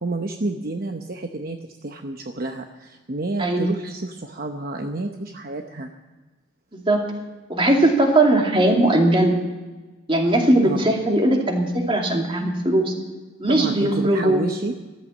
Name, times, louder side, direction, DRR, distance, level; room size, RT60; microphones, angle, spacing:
voice 1, 0.0-5.9 10.6-10.9 13.5-14.7, right 2 dB, 50° right, 4 dB, 0.9 m, -30 dB
voice 2, 3.4-3.7 6.7-7.0 7.5-9.4 10.1-12.9 13.4-14.5, right 1 dB, 30° right, 1 dB, 2.6 m, -19 dB
14.0 x 14.0 x 7.3 m, 1.2 s
head